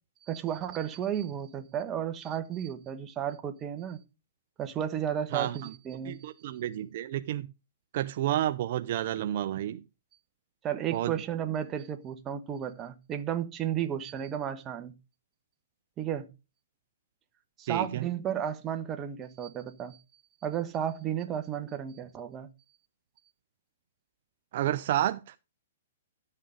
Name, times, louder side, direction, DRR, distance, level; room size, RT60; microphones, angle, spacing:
voice 1, 0.2-4.0 4.6-6.2 10.6-14.9 16.0-16.3 17.6-20.0 20.4-22.5, right 9 dB, 20° right, 1.3 m, -33 dB
voice 2, 5.3-5.7 6.0-7.5 7.9-9.8 10.9-11.1 17.7-18.1 24.5-25.3, right 12 dB, 55° right, 0.6 m, -30 dB
12.5 x 6.6 x 5.1 m
hypercardioid pair, 140°, 0 cm